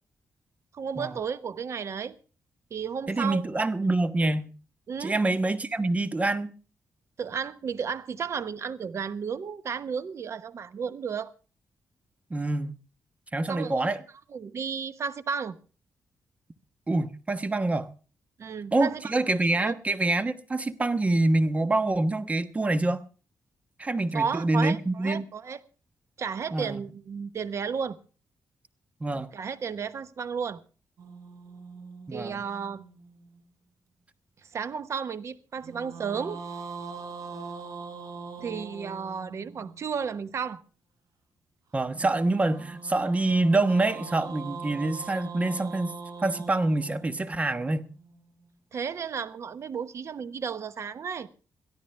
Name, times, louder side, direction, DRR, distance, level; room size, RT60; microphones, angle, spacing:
voice 1, 0.7-2.2 2.7-3.5 4.9-5.2 7.2-11.3 13.5-13.9 14.3-15.6 18.4-19.8 24.1-25.6 26.2-28.0 29.1-30.6 32.1-32.8 34.5-36.4 38.4-40.6 48.7-51.3, right 6 dB, 55° right, 1.1 m, -33 dB
voice 2, 3.1-4.5 5.0-6.5 12.3-12.7 13.3-14.0 16.9-17.9 18.7-23.0 23.8-25.2 26.5-26.8 29.0-29.3 32.1-32.4 41.7-45.9 46.2-47.9, right 2 dB, 25° right, 1.2 m, -26 dB
sound 1, 31.0-33.4 35.6-39.8 41.9-48.1, right 4 dB, 75° right, 4.1 m, -42 dB
22.5 x 13.5 x 3.4 m
cardioid pair, 115°, 6 cm